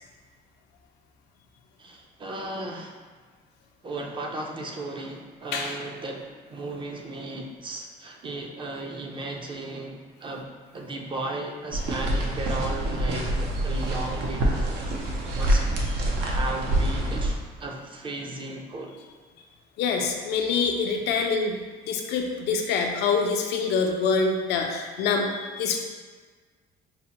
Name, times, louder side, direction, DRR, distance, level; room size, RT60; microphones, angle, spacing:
voice 1, 1.8-3.0 3.8-14.5 15.3-15.7 16.2-18.9, right 2 dB, 30° right, 1 dB, 0.5 m, -35 dB
sound 1, 11.7-17.3, right 1 dB, 80° right, 0.6 m, -26 dB
voice 2, 19.8-25.8, left 5 dB, 80° left, 2 dB, 0.5 m, -25 dB
5.3 x 2.1 x 2.9 m, 1.5 s
cardioid pair, 110°, 17 cm